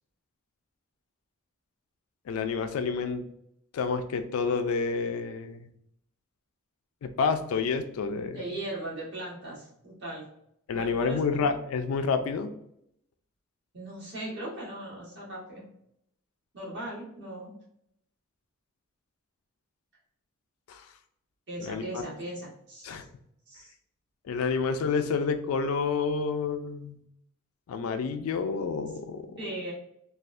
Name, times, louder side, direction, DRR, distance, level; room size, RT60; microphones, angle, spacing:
voice 1, 2.3-3.2 3.7-5.6 7.0-8.4 10.7-12.5 20.7-20.8 21.6-22.1 22.8-23.1 24.3-27.0 27.7-29.4, left 5 dB, 80° left, 8 dB, 0.3 m, -29 dB
voice 2, 8.3-10.2 10.7-11.2 13.7-15.7 16.5-17.5 21.5-23.1 23.5-23.7 24.4-24.5 29.4-29.7, right 1 dB, 55° right, -5 dB, 1.3 m, -38 dB
3.4 x 2.4 x 2.4 m, 0.74 s
head